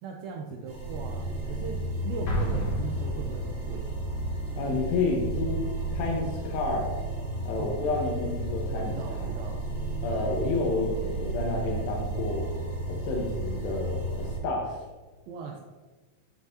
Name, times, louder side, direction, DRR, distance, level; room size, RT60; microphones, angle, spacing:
voice 1, 0.0-4.0 7.6-7.7 8.7-9.7 15.3-15.6, right 5 dB, 85° right, 1 dB, 2.1 m, -39 dB
sound 1, 0.7-14.4, right 2 dB, 55° right, 3.8 m, -33 dB
Explosion, 2.2-3.9, left 2 dB, 50° left, 1.7 m, -31 dB
voice 2, 4.6-5.7 5.9-6.9 7.5-9.0 10.0-12.4 12.9-14.8, left 3 dB, 75° left, -1 dB, 3.0 m, -30 dB
13.0 x 6.0 x 2.8 m, 1.3 s
omnidirectional pair, 5.0 m